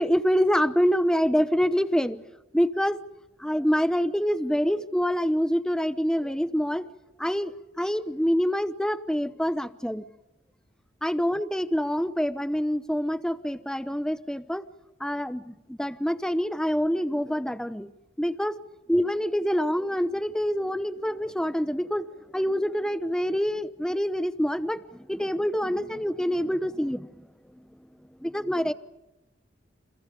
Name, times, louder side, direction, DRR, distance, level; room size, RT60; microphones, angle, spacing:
voice 1, 0.0-2.2 2.5-3.0 3.4-6.9 7.2-10.0 11.0-14.6 15.0-17.9 18.2-18.5 18.9-22.1 22.3-27.2 28.2-28.7, equal, 5° left, 13 dB, 0.9 m, -26 dB
29.0 x 28.5 x 5.1 m, 0.96 s
head